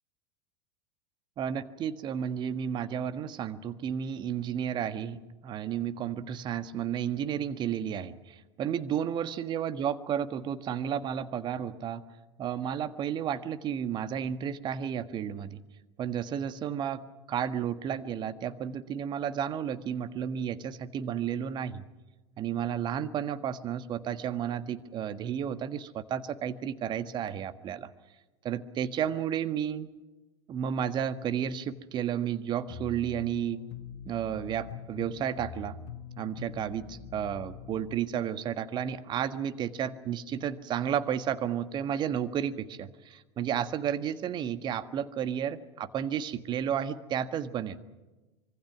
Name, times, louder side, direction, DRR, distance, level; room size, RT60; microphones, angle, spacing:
voice 1, 1.4-12.0 12.4-15.6 16.0-17.0 17.3-21.8 22.4-27.9 28.4-29.9 30.5-33.6 34.0-35.8 36.2-47.8, right 9 dB, 35° right, 11 dB, 1.5 m, -32 dB
sound 1, 32.7-38.0, left 7 dB, 50° left, 1.8 m, -44 dB
25.5 x 24.0 x 6.1 m, 1.1 s
figure-of-eight pair, 85°, 14 cm